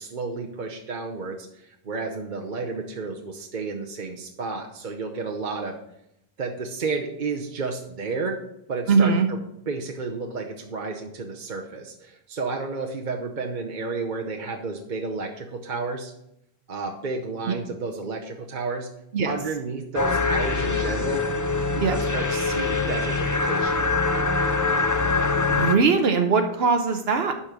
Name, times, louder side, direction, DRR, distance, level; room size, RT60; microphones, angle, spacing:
voice 1, 0.0-5.7 6.4-8.4 8.7-16.1 16.7-18.9 19.2-21.2 21.7-23.8, right 4 dB, 50° right, 1 dB, 1.0 m, -31 dB
voice 2, 8.9-9.3 19.1-19.3 21.8-22.0 25.5-27.3, right 5 dB, 75° right, 6 dB, 1.0 m, -20 dB
sound 1, 19.9-25.8, left 3 dB, 25° left, 0.5 m, -23 dB
11.5 x 4.3 x 6.0 m, 0.79 s
omnidirectional pair, 1.1 m